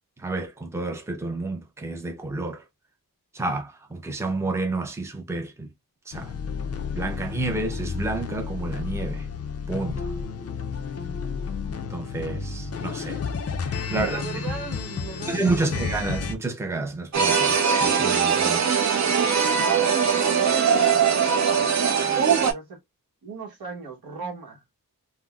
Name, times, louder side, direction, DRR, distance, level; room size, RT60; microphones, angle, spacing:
voice 1, 0.2-2.6 3.3-5.7 6.1-6.3 6.9-9.3 9.7-10.1 11.9-13.2 13.6-14.2 15.3-18.6, right 2 dB, 5° right, 0.5 m, -30 dB
sound 1, 6.1-16.4, left 5 dB, 40° left, 0.4 m, -31 dB
voice 2, 13.9-15.8 18.4-19.1 19.5-19.9 20.3-22.8 23.2-24.6, right 4 dB, 70° right, 1.1 m, -38 dB
sound 2, 17.1-22.5, right 6 dB, 45° right, 0.6 m, -21 dB
3.8 x 2.0 x 2.3 m
wide cardioid pair, 140°, 38 cm